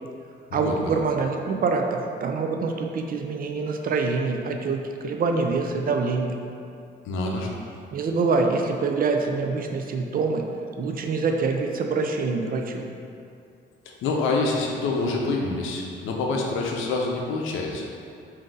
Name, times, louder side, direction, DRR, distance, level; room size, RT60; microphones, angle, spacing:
voice 1, 0.5-6.4 7.9-10.4 10.8-12.8, right 4 dB, 45° right, 3 dB, 0.4 m, -25 dB
voice 2, 7.0-7.5 13.9-17.9, left 3 dB, 85° left, 0 dB, 0.6 m, -26 dB
3.7 x 2.7 x 3.8 m, 2.5 s
cardioid pair, 90°, 20 cm